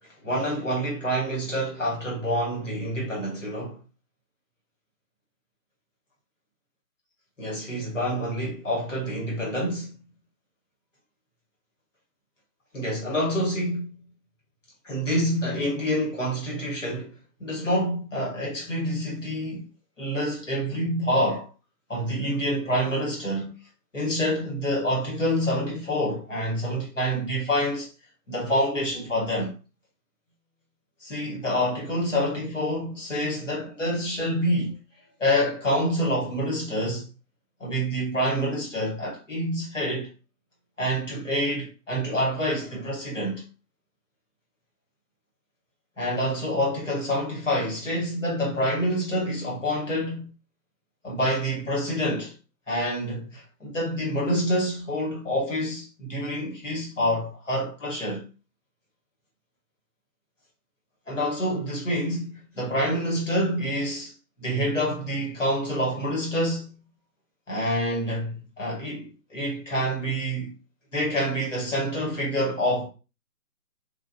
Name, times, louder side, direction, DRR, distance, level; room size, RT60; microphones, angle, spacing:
voice 1, 0.2-3.8 7.4-9.9 12.7-14.0 14.8-17.1 17.4-19.7 20.0-21.5 21.9-23.6 23.9-27.9 28.3-29.5 31.0-34.8 35.2-37.1 37.6-40.1 40.8-43.4 46.0-50.3 51.0-52.3 52.7-58.2 61.1-64.1 64.4-66.8 67.5-70.5 70.9-72.9, equal, 50° left, 1.3 m, -27 dB
2.6 x 2.4 x 2.6 m
hypercardioid pair, 180°, 48 cm